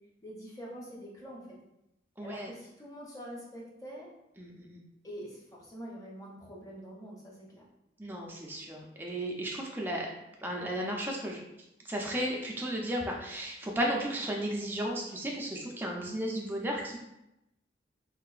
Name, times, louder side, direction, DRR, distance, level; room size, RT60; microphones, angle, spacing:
voice 1, 0.2-1.4 2.2-4.1 5.0-7.6, equal, 20° left, -4 dB, 0.7 m, -45 dB
voice 2, 2.2-2.5 4.4-4.8 8.0-10.1 10.4-11.4 11.9-17.0, right 1 dB, 10° right, -1 dB, 0.4 m, -34 dB
3.7 x 2.5 x 2.4 m, 0.88 s
head